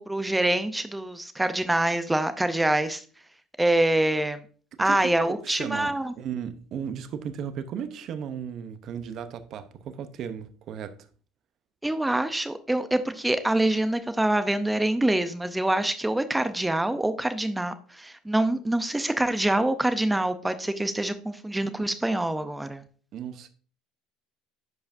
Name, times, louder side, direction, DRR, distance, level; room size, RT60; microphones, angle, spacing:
voice 1, 0.0-3.0 3.6-4.4 4.8-6.1 11.8-22.8, right 1 dB, 10° right, 0.6 m, -25 dB
voice 2, 4.8-11.0 23.1-23.5, right 8 dB, 50° right, 0.7 m, -35 dB
10.5 x 4.8 x 2.6 m
supercardioid pair, 115°, 0 cm